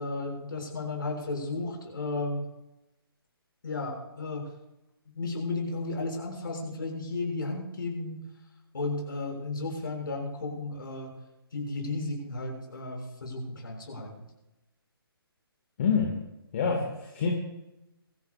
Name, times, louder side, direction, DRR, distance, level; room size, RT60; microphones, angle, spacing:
voice 1, 0.0-2.5 3.6-4.5 5.1-8.2 8.7-11.1 11.5-14.3, left 2 dB, 55° left, 0 dB, 6.2 m, -34 dB
voice 2, 15.8-16.1 16.5-17.3, left 5 dB, 35° left, 1 dB, 2.0 m, -26 dB
24.0 x 14.5 x 2.5 m, 0.95 s
figure-of-eight pair, 140°, 13 cm